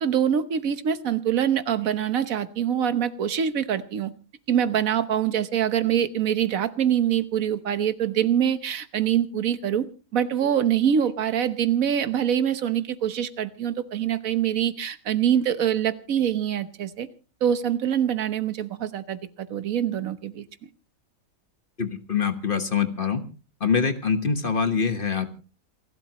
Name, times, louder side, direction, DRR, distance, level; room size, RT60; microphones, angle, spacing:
voice 1, 0.0-4.1 4.5-9.9 10.1-17.1 17.4-20.4, right 9 dB, 65° right, 12 dB, 1.4 m, -24 dB
voice 2, 21.8-23.2 23.6-25.3, left 6 dB, 40° left, 9 dB, 1.4 m, -24 dB
28.0 x 12.5 x 3.0 m, 0.34 s
omnidirectional pair, 1.6 m